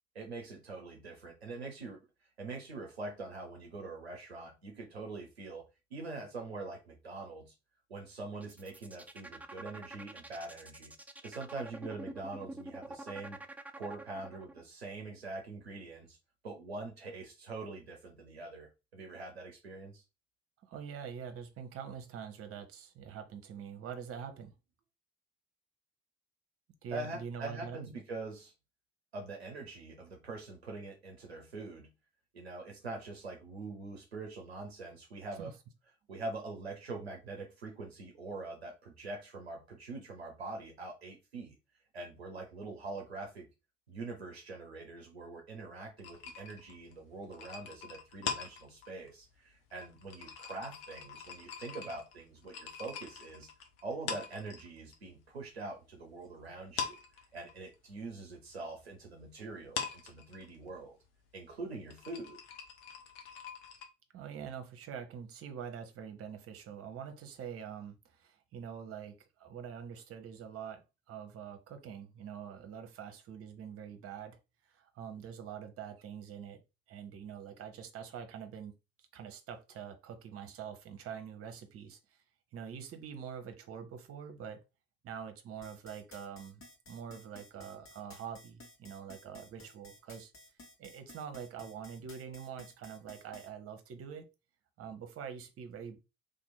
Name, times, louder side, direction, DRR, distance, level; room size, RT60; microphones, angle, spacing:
voice 1, 0.1-2.0 2.4-5.7 5.9-7.5 7.9-10.9 11.2-13.4 13.7-16.2 16.4-20.0 26.9-28.5 29.1-31.9 32.3-35.5 36.1-41.6 41.9-43.5 43.9-53.5 53.8-57.0 57.3-61.0 61.3-62.4, right 3 dB, 90° right, 0.5 m, -44 dB
sound 1, 8.4-14.6, right 2 dB, 5° right, 0.3 m, -46 dB
voice 2, 20.6-24.5 26.8-28.0 35.4-35.5 64.1-74.4 74.7-76.6 76.9-78.7 79.1-82.2 82.5-84.6 85.0-90.3 90.8-94.3 94.8-96.0, right 7 dB, 50° right, 0.8 m, -45 dB
sound 2, 46.0-55.0 55.3-56.3 56.6-63.9, left 6 dB, 70° left, 0.7 m, -43 dB
sound 3, 85.6-93.5, left 2 dB, 45° left, 1.3 m, -55 dB
2.8 x 2.5 x 4.1 m
figure-of-eight pair, 45°, 31 cm